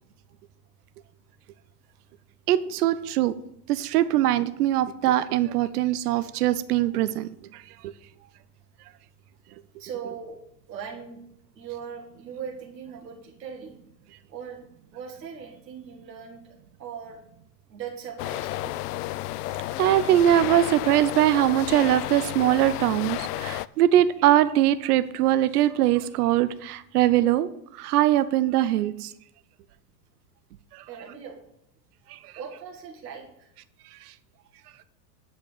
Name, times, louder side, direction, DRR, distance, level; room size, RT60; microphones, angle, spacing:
voice 1, 2.5-3.3 3.7-7.9 19.8-29.1 30.7-30.8 32.1-32.3, right 13 dB, 65° right, 13 dB, 0.8 m, -22 dB
voice 2, 9.8-10.4 10.7-11.2 11.6-13.8 14.3-14.6 14.9-17.2 17.7-18.8 30.9-31.4 32.4-33.5, right 7 dB, 80° right, 0 dB, 2.3 m, -39 dB
sound 1, 18.2-23.7, left 16 dB, 70° left, 0.5 m, -32 dB
10.0 x 5.1 x 6.8 m, 0.76 s
hypercardioid pair, 95°, 49 cm